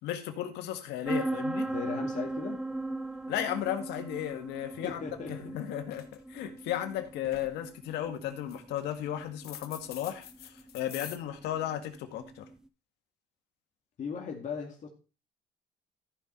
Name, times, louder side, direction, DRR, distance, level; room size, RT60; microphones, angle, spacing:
voice 1, 0.0-1.7 3.3-5.0 5.3-12.4, left 11 dB, 85° left, 1.9 m, -35 dB
sound 1, 1.1-12.6, right 2 dB, 5° right, 0.6 m, -38 dB
voice 2, 1.7-2.6 4.8-5.5 14.0-14.9, left 6 dB, 45° left, 2.3 m, -38 dB
sound 2, 5.3-5.6 5.8-6.6 7.0-7.6 8.3-8.9 9.4-11.2, left 11 dB, 70° left, 1.3 m, -46 dB
14.5 x 5.6 x 4.5 m
cardioid pair, 110°, 17 cm